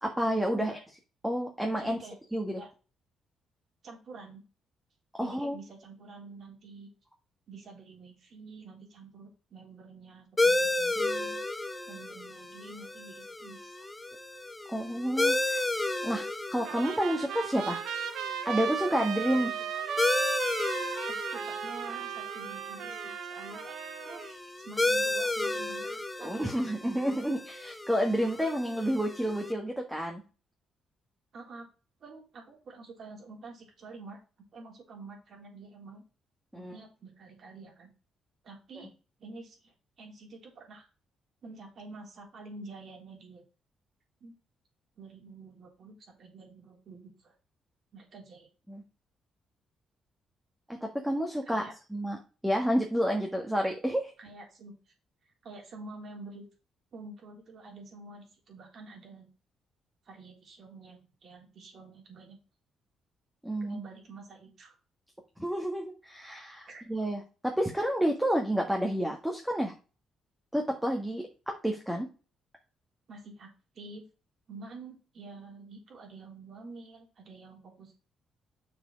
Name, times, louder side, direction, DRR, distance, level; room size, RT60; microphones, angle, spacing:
voice 1, 0.0-0.8 1.2-2.0 2.3-2.6 5.1-5.6 14.7-15.6 16.0-16.2 16.5-17.8 18.4-19.5 26.2-30.2 36.5-36.8 48.7-48.8 50.7-51.6 51.9-52.2 52.4-54.1 63.4-63.8 65.4-69.7 70.5-72.1, equal, 5° right, 2 dB, 1.7 m, -30 dB
voice 2, 1.8-2.2 2.6-2.7 3.8-4.4 5.2-6.9 7.5-11.4 11.9-13.9 19.3-19.7 21.3-23.8 24.0-26.5 31.3-31.7 32.0-34.2 34.5-36.0 36.5-37.9 38.4-38.9 39.2-40.9 41.4-43.4 44.2-44.3 45.0-47.3 47.9-48.5 51.4-51.7 54.2-54.9 55.4-56.4 56.9-59.3 60.1-62.4 63.6-64.8 66.7-66.9 73.1-73.5 73.7-74.0 74.5-78.0, right 3 dB, 55° right, 0 dB, 3.8 m, -48 dB
sound 1, 10.4-29.5, left 2 dB, 15° left, 0.9 m, -33 dB
Trumpet, 16.6-24.3, right 8 dB, 85° right, 1.2 m, -36 dB
6.6 x 4.7 x 6.3 m, 0.33 s
cardioid pair, 90°, 0 cm